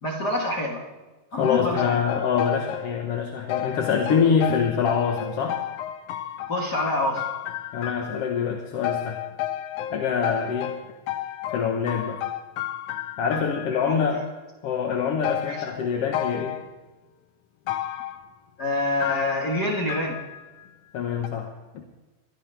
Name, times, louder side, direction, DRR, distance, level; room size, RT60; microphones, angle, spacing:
voice 1, 0.0-0.8 1.3-2.0 4.1-4.2 6.5-7.3 13.8-14.1 15.4-15.6 18.6-20.2, left 1 dB, 40° left, 0 dB, 1.7 m, -27 dB
voice 2, 1.3-5.6 7.7-9.2 9.9-10.8 11.5-12.2 13.2-14.2 14.6-16.6 20.9-21.8, left 6 dB, 60° left, 2 dB, 1.9 m, -25 dB
sound 1, 1.4-3.0 3.5-8.4 8.8-13.9 15.2-16.6 17.7-18.2 19.0-20.7 21.2-21.3, left 12 dB, 75° left, 2.2 m, -32 dB
24.0 x 16.5 x 3.4 m, 1.2 s
omnidirectional pair, 3.7 m